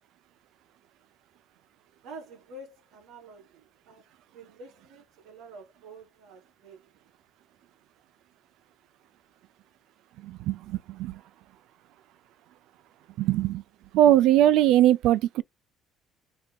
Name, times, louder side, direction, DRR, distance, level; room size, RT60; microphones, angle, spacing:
voice 1, 2.0-4.0 4.3-6.9, right 2 dB, 85° right, 2.5 m, -48 dB
voice 2, 10.2-11.2 13.2-13.6 13.9-15.4, right 12 dB, 65° right, 0.3 m, -21 dB
4.9 x 3.4 x 2.2 m
cardioid pair, 165°, 0 cm